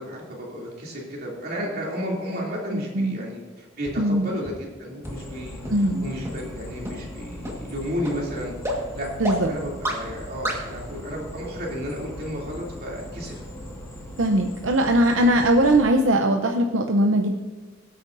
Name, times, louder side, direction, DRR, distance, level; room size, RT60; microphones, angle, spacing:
voice 1, 0.0-8.5 8.9-9.1 9.5-13.4 15.2-15.4, equal, 50° right, -3 dB, 2.9 m, -33 dB
voice 2, 2.7-3.3 4.0-4.4 5.7-6.1 9.2-9.5 14.2-17.4, right 1 dB, 85° right, 3 dB, 0.8 m, -20 dB
sound 1, 3.8-3.9 4.4-4.5 5.0-5.1 5.6-5.7 6.2-6.3 6.8-6.9 7.4-7.5 8.0-8.1 8.6-8.7 9.2-9.3 9.8-9.9 10.4-10.5, equal, 15° right, 1.6 m, -28 dB
sound 2, 5.0-15.8, equal, 15° left, 1.8 m, -39 dB
17.0 x 8.6 x 2.7 m, 1.4 s
head